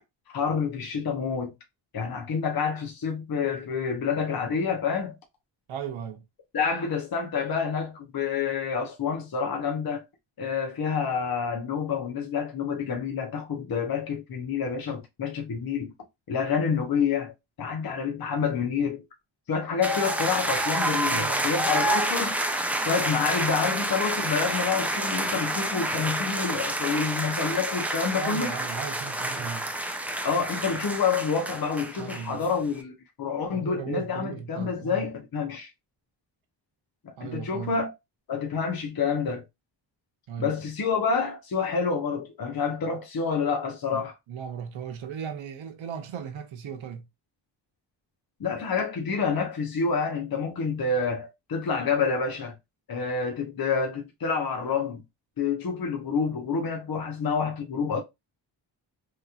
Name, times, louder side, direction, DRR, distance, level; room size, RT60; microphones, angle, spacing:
voice 1, 0.3-1.5 1.9-5.2 6.5-10.0 10.4-15.9 16.3-19.0 19.5-22.4 22.9-28.5 30.2-35.7 37.0-37.9 38.3-39.4 40.4-44.1 48.4-52.5 52.9-55.0 55.4-58.0, left 5 dB, 50° left, 0.9 m, -28 dB
voice 2, 5.7-6.2 21.1-21.5 28.2-29.7 32.0-32.4 33.5-35.1 37.2-37.8 40.3-40.6 42.7-42.8 43.9-47.1, right 8 dB, 85° right, 0.7 m, -37 dB
sound 1, 19.8-32.5, right 1 dB, 5° right, 0.5 m, -29 dB
3.1 x 2.8 x 2.4 m
cardioid pair, 75°, 46 cm